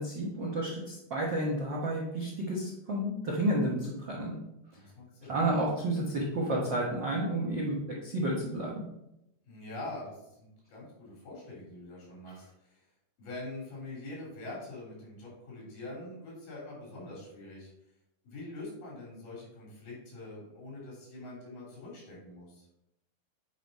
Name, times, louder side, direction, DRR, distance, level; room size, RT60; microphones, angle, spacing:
voice 1, 0.0-4.3 5.3-7.7 8.0-8.8, right 1 dB, 60° right, -3 dB, 1.2 m, -31 dB
voice 2, 4.7-5.4 9.4-12.9 13.2-17.7 18.2-22.7, left 2 dB, 75° left, -5 dB, 5.0 m, -44 dB
8.7 x 5.1 x 4.1 m, 0.85 s
omnidirectional pair, 4.0 m